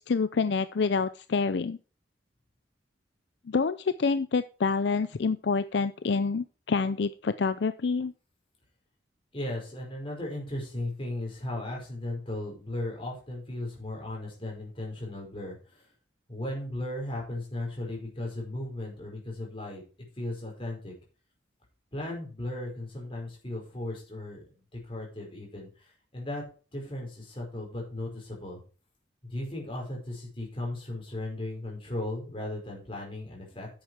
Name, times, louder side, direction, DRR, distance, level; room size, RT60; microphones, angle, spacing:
voice 1, 0.0-1.8 3.5-8.1, left 4 dB, 65° left, 13 dB, 0.5 m, -27 dB
voice 2, 9.3-15.8 16.3-19.8 20.2-20.9 21.9-24.4 24.7-26.4 26.7-28.6 29.2-33.7, left 1 dB, 30° left, -1 dB, 5.1 m, -36 dB
10.0 x 8.1 x 4.7 m, 0.36 s
head